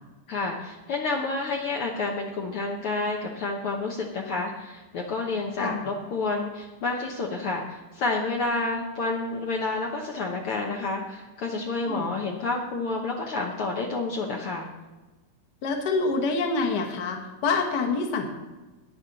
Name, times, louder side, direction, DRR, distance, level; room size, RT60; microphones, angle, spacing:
voice 1, 0.3-14.7, left 3 dB, 80° left, 0 dB, 1.2 m, -29 dB
voice 2, 15.6-18.2, left 4 dB, 55° left, 3 dB, 1.1 m, -26 dB
12.0 x 9.9 x 4.0 m, 1.2 s
omnidirectional pair, 3.9 m